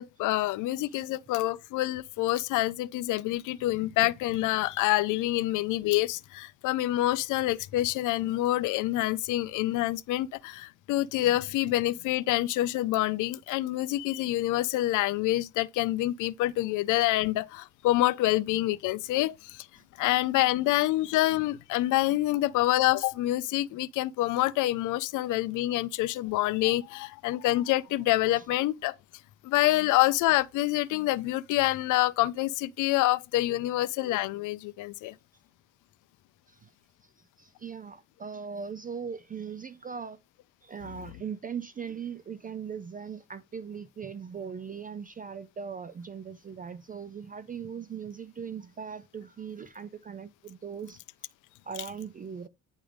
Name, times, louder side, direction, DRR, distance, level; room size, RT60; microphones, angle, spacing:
voice 1, 0.0-19.7 20.0-28.9 29.4-35.1, left 16 dB, 85° left, 0.5 m, -27 dB
voice 2, 37.0-40.2 40.6-51.0 51.6-52.5, right 6 dB, 30° right, 0.5 m, -39 dB
9.0 x 3.3 x 5.0 m
cardioid pair, 90°, 30 cm